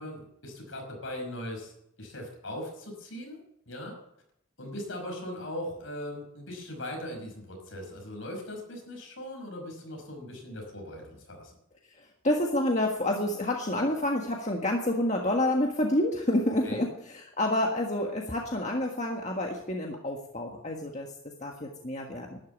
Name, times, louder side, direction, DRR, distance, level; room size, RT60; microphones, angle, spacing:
voice 1, 0.0-1.7 2.0-4.0 4.6-11.5 16.6-16.9, left 1 dB, 65° left, 2 dB, 5.7 m, -39 dB
voice 2, 11.9-21.1 21.4-22.4, left 1 dB, 35° left, 0 dB, 1.6 m, -28 dB
12.5 x 11.0 x 9.4 m, 0.76 s
head